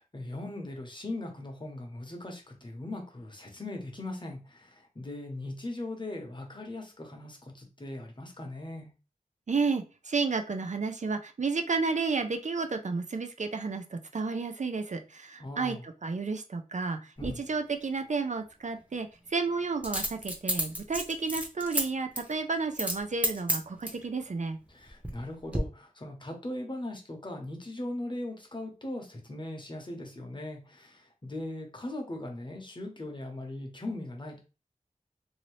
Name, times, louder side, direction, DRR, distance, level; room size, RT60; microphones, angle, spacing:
voice 1, 0.0-8.9 15.4-15.8 17.2-17.4 24.7-34.4, left 1 dB, 35° left, 1 dB, 0.9 m, -39 dB
voice 2, 9.5-24.6, right 4 dB, 60° right, 5 dB, 0.4 m, -32 dB
Coin (dropping), 17.2-17.3 19.8-21.8 22.2-22.3 22.7-23.0 23.2-24.0 24.7-25.2 25.5-25.6, right 1 dB, 10° right, 0.8 m, -31 dB
2.7 x 2.7 x 3.1 m, 0.32 s
wide cardioid pair, 65°, 14 cm